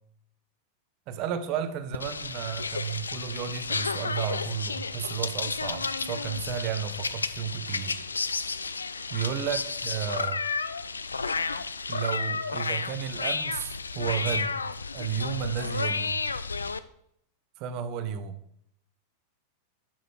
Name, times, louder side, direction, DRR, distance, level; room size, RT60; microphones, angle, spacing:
voice 1, 1.1-8.0 9.1-10.4 11.9-14.6 14.9-16.2 17.6-18.4, right 8 dB, 40° right, 10 dB, 0.8 m, -33 dB
sound 1, 1.9-16.8, left 4 dB, 75° left, 0.3 m, -32 dB
7.3 x 6.1 x 4.5 m, 0.73 s
figure-of-eight pair, 90°, 0 cm